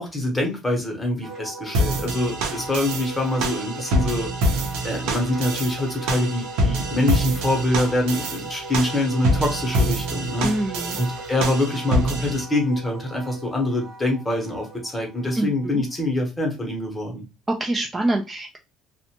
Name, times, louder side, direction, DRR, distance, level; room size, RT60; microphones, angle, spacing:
voice 1, 0.0-4.3 4.8-10.5 11.0-17.3, left 1 dB, 10° left, 1 dB, 0.9 m, -25 dB
Wind instrument woodwind instrument, 1.2-15.9, right 2 dB, 50° right, 0.8 m, -38 dB
sound 1, 1.7-12.4, right 1 dB, 85° right, 0.7 m, -26 dB
voice 2, 10.4-11.0 15.4-15.8 17.5-18.6, right 1 dB, 15° right, 1 dB, 0.3 m, -25 dB
2.5 x 2.1 x 2.8 m, 0.26 s
cardioid pair, 140°, 0 cm